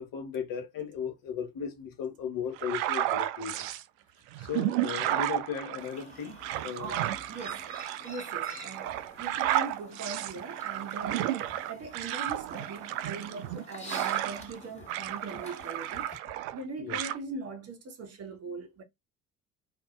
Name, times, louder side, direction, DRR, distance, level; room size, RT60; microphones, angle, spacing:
voice 1, 0.0-3.7 4.4-6.4 6.6-6.9 16.8-17.0, left 7 dB, 45° left, 1.1 m, -36 dB
sound 1, 2.6-3.8 4.3-14.6 14.9-16.6 16.9-17.2, right 13 dB, 60° right, 0.5 m, -32 dB
Chirp tweet, 5.8-16.2, left 1 dB, 15° left, 1.4 m, -49 dB
voice 2, 6.8-7.7 8.0-16.1 16.5-18.8, right 3 dB, 35° right, 0.9 m, -41 dB
2.7 x 2.1 x 3.6 m
figure-of-eight pair, 60°, 46 cm